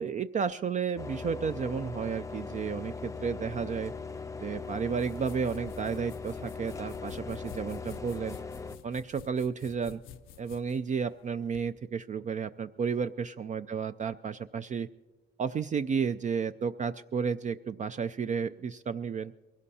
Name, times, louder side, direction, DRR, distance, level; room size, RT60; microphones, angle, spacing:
voice 1, 0.0-3.9 4.4-8.4 8.8-10.0 10.4-14.9 15.4-19.3, right 6 dB, 40° right, 10 dB, 0.4 m, -32 dB
sound 1, 1.0-8.8, left 4 dB, 15° left, 0.5 m, -40 dB
sound 2, 4.5-11.7, left 8 dB, 85° left, 0.6 m, -52 dB
22.5 x 16.5 x 2.8 m, 1.2 s
cardioid pair, 90°, 20 cm